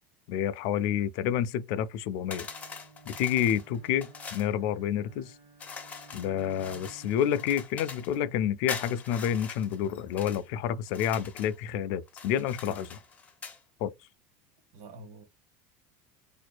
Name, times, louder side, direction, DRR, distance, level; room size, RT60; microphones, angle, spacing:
voice 1, 0.3-2.5 3.1-5.3 6.1-12.9 13.8-13.9, left 9 dB, 55° left, 0.4 m, -29 dB
Bowed string instrument, 2.1-7.4, right 5 dB, 35° right, 0.9 m, -55 dB
sound 1, 2.3-4.5 5.6-8.2 8.7-10.4 10.9-11.6 12.1-13.6, left 5 dB, 20° left, 0.7 m, -43 dB
voice 2, 14.7-15.2, right 2 dB, 70° right, 1.4 m, -48 dB
4.3 x 2.6 x 2.3 m
supercardioid pair, 155°, 8 cm